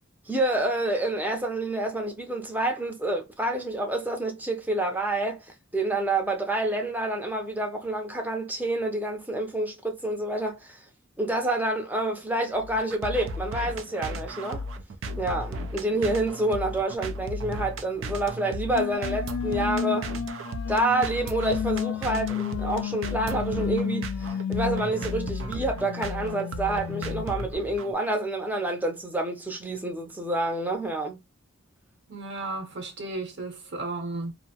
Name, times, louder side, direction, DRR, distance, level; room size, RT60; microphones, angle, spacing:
voice 1, 0.3-10.9 11.2-14.7 15.2-20.1 20.7-31.2, right 1 dB, 10° right, 0.5 m, -28 dB
sound 1, 12.5-27.9, equal, 75° right, 0.4 m, -35 dB
sound 2, 18.7-27.3, left 7 dB, 85° left, 0.3 m, -32 dB
voice 2, 32.1-34.3, right 2 dB, 55° right, 0.9 m, -34 dB
2.6 x 2.0 x 2.7 m
head